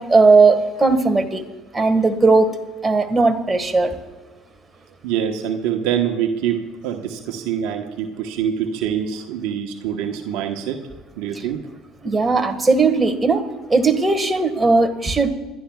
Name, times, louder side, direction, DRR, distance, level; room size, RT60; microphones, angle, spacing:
voice 1, 0.0-1.4 1.7-2.5 2.8-3.9 12.0-13.4 13.7-15.3, right 3 dB, 20° right, 6 dB, 1.7 m, -17 dB
voice 2, 5.0-10.8 11.2-11.7, right 9 dB, 75° right, 4 dB, 1.2 m, -25 dB
26.0 x 12.0 x 2.4 m, 1.3 s
hypercardioid pair, 70°, 0 cm